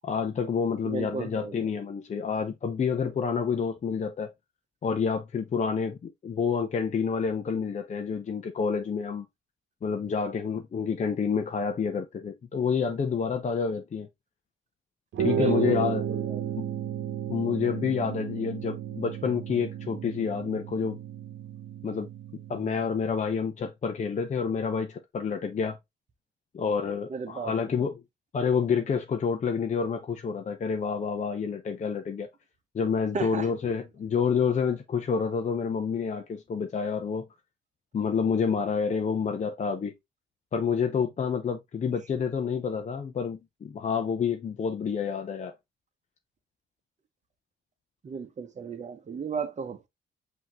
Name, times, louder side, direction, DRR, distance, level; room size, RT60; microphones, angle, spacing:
voice 1, 0.0-4.3 4.8-9.3 9.8-14.1 15.2-16.1 16.6-16.7 17.3-21.0 21.8-22.1 22.5-25.8 26.5-28.0 28.3-32.3 32.7-37.3 37.9-39.9 40.5-45.5, left 6 dB, 35° left, 0.6 m, -28 dB
voice 2, 0.9-1.6 15.4-16.5 27.1-27.5 33.1-33.5 48.0-49.9, right 5 dB, 35° right, 0.9 m, -34 dB
sound 1, 15.1-22.9, right 9 dB, 70° right, 1.0 m, -33 dB
5.6 x 2.9 x 3.0 m
cardioid pair, 90°, 20 cm